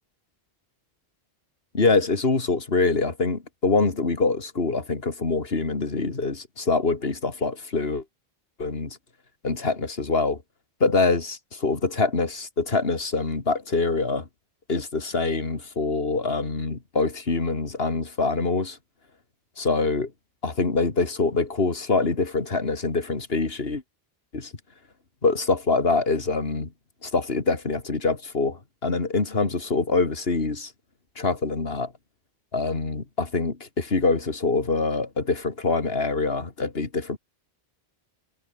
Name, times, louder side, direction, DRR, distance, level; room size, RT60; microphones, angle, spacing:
voice 1, 1.7-8.0 8.6-9.0 9.4-10.4 10.8-14.3 14.7-18.8 19.6-20.1 20.4-23.8 24.3-24.5 25.2-26.7 27.0-30.7 31.2-31.9 32.5-37.2, left 3 dB, 70° left, 2.8 m, -25 dB
omnidirectional pair, 1.1 m